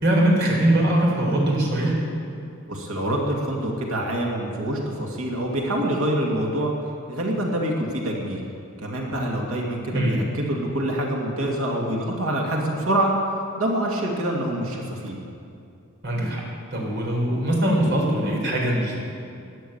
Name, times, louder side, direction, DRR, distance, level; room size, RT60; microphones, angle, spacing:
voice 1, 0.0-1.9 9.9-10.2 16.0-16.4 16.7-18.9, right 1 dB, 50° right, -2 dB, 4.2 m, -21 dB
voice 2, 2.7-6.7 7.1-8.4 8.8-13.1 13.6-15.2, right 1 dB, 85° right, -1 dB, 2.4 m, -26 dB
13.5 x 10.5 x 8.9 m, 2.5 s
head